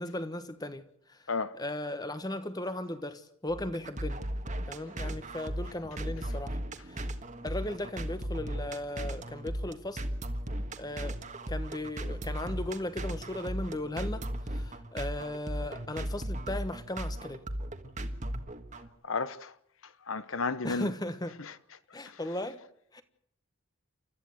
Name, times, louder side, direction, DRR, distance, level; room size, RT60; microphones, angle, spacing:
voice 1, 0.0-4.2 4.7-6.6 6.8-7.1 7.4-10.1 10.8-11.2 11.5-17.4 20.6-21.4 21.9-22.6 22.9-23.0, left 1 dB, 15° left, 1.2 m, -37 dB
sound 1, 3.5-18.9, right 1 dB, 35° right, 1.6 m, -36 dB
voice 2, 19.1-19.5 20.1-20.9 21.5-21.6, left 4 dB, 65° left, 0.9 m, -32 dB
29.0 x 14.0 x 7.9 m
head